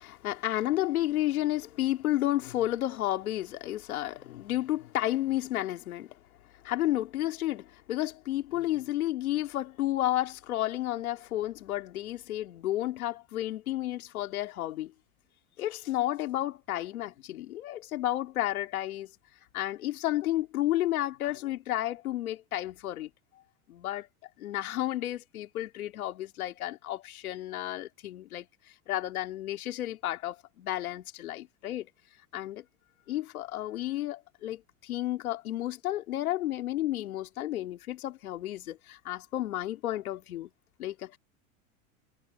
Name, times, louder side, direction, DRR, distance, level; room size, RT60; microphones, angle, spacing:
voice 1, 0.0-6.2 6.6-14.9 15.6-19.1 19.5-23.1 23.7-24.1 24.4-28.5 28.9-31.9 32.3-32.6 33.1-40.5 40.8-41.2, left 14 dB, 85° left, 2.7 m, -32 dB
hypercardioid pair, 105°, 42 cm